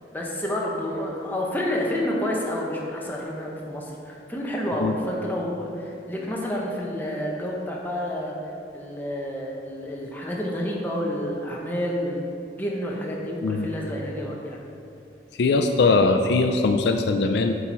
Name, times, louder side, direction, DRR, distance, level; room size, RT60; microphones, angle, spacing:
voice 1, 0.1-8.3 8.7-14.6, left 1 dB, 10° left, -3 dB, 0.9 m, -29 dB
voice 2, 15.4-17.5, left 3 dB, 65° left, 6 dB, 0.4 m, -21 dB
8.2 x 4.3 x 4.6 m, 2.6 s
head